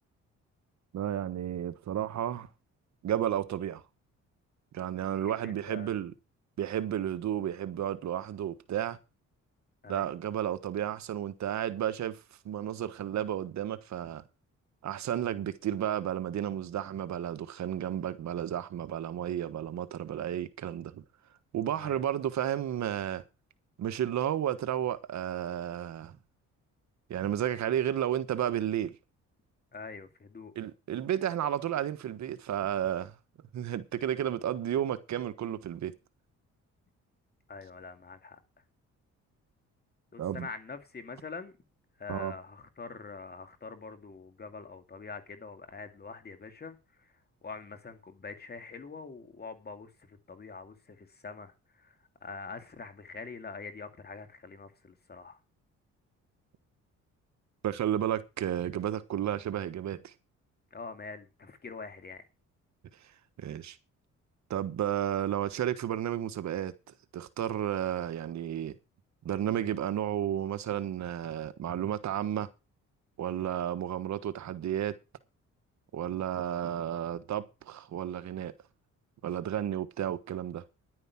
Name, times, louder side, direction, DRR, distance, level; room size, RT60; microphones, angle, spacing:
voice 1, 0.9-2.5 3.0-3.8 4.7-6.1 6.6-9.0 9.9-12.2 12.4-14.2 14.8-21.0 21.5-23.2 23.8-26.2 27.1-28.9 30.5-33.1 33.5-35.9 40.2-40.5 42.1-42.3 57.6-60.1 63.4-63.8 64.5-66.7 67.1-68.7 69.2-72.5 73.2-74.9 75.9-78.5 79.2-80.6, right 10 dB, 65° right, 1.4 m, -32 dB
voice 2, 5.2-6.0 9.8-10.1 21.8-22.0 29.7-30.5 37.5-38.4 40.1-41.5 42.0-47.1 47.4-52.0 52.2-55.4 60.7-62.2 73.4-73.6, left 4 dB, 35° left, 2.4 m, -44 dB
11.0 x 9.5 x 5.9 m
cardioid pair, 90°, 30 cm